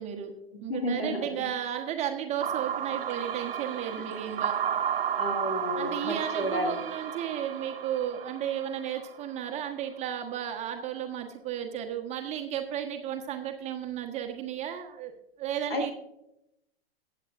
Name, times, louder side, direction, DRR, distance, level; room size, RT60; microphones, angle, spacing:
voice 1, 0.0-0.3 0.6-4.6 5.7-15.1 15.4-15.9, right 10 dB, 20° right, 4 dB, 1.2 m, -34 dB
voice 2, 0.5-1.3 5.2-6.8 15.7-15.9, left 1 dB, 70° left, 2 dB, 2.4 m, -31 dB
sound 1, 2.4-9.5, right 8 dB, 65° right, 0.7 m, -33 dB
22.0 x 8.5 x 2.6 m, 0.82 s
figure-of-eight pair, 105°, 31 cm